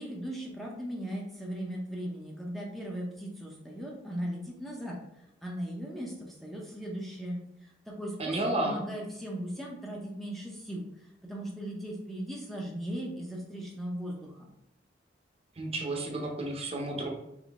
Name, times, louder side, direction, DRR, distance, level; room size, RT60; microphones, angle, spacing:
voice 1, 0.0-8.4 8.6-14.5, equal, ahead, -3 dB, 0.6 m, -38 dB
voice 2, 8.2-8.8 15.6-17.1, right 2 dB, 35° right, 0 dB, 0.7 m, -31 dB
3.8 x 3.2 x 3.5 m, 0.86 s
head